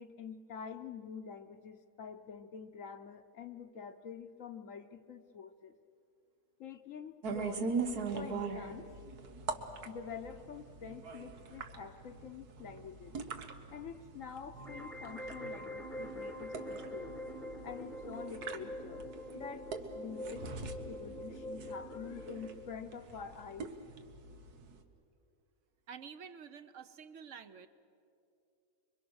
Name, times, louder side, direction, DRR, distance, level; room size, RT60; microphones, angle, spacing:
voice 1, 0.0-5.7 6.6-7.7 8.1-8.9 9.8-13.2 13.7-17.1 17.6-19.0 19.3-19.7 19.9-23.7, left 6 dB, 65° left, 7 dB, 1.1 m, -47 dB
sound 1, 7.2-24.8, right 4 dB, 85° right, 1.7 m, -42 dB
sound 2, 14.6-22.6, equal, ahead, 1.0 m, -44 dB
voice 2, 25.9-27.7, right 7 dB, 60° right, 11 dB, 1.1 m, -49 dB
26.0 x 23.5 x 6.3 m, 2.6 s
omnidirectional pair, 1.6 m